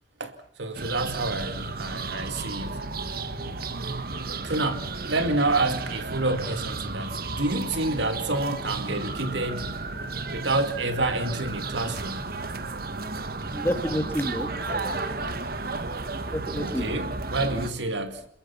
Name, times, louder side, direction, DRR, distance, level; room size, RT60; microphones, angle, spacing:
voice 1, 0.2-2.8 4.4-9.8 10.3-12.3 16.5-18.3, right 2 dB, 65° right, 2.3 m, -28 dB
sound 1, 0.7-17.7, right 3 dB, 50° right, 1.4 m, -33 dB
voice 2, 13.5-15.2 16.3-17.0, equal, 10° left, 2.3 m, -30 dB
27.5 x 22.5 x 5.8 m
head